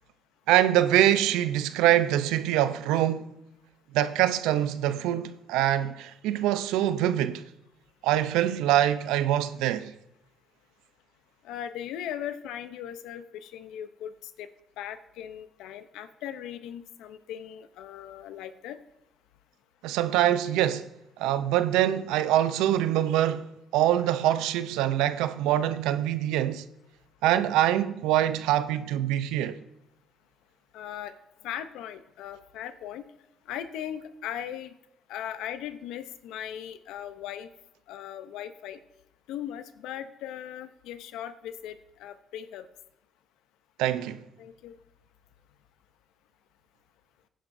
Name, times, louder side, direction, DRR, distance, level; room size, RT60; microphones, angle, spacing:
voice 1, 0.5-3.3 3.9-7.4 8.0-9.9 19.8-20.9 21.2-26.6 27.2-29.6 43.8-44.2, right 12 dB, 85° right, 0.6 m, -24 dB
voice 2, 11.4-14.5 14.8-18.8 30.7-31.1 31.4-33.0 33.5-34.7 35.1-37.5 37.9-38.8 39.3-42.7 44.4-44.8, left 10 dB, 80° left, 0.7 m, -38 dB
16.5 x 10.0 x 2.7 m
supercardioid pair, 65°, 0 cm